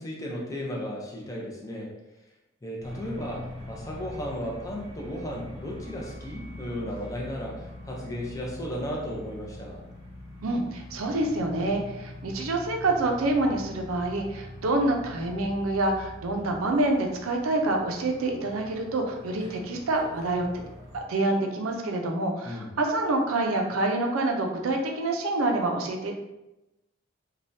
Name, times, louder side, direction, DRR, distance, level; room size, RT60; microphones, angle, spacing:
voice 1, 0.0-1.9 2.6-9.8 22.4-22.7, equal, 15° left, -2 dB, 0.5 m, -35 dB
sound 1, 2.8-21.0, left 1 dB, 30° right, 0.9 m, -43 dB
voice 2, 10.4-20.5 20.9-26.1, right 2 dB, 90° right, 2 dB, 0.5 m, -27 dB
3.3 x 2.2 x 2.6 m, 0.96 s
head